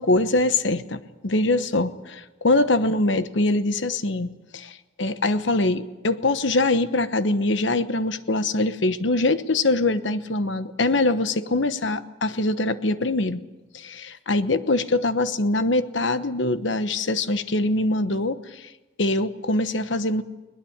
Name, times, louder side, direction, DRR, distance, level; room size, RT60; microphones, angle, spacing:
voice 1, 0.0-13.4 13.7-18.7 19.0-20.2, left 2 dB, 70° left, 12 dB, 1.1 m, -23 dB
21.5 x 20.0 x 8.8 m, 1.1 s
head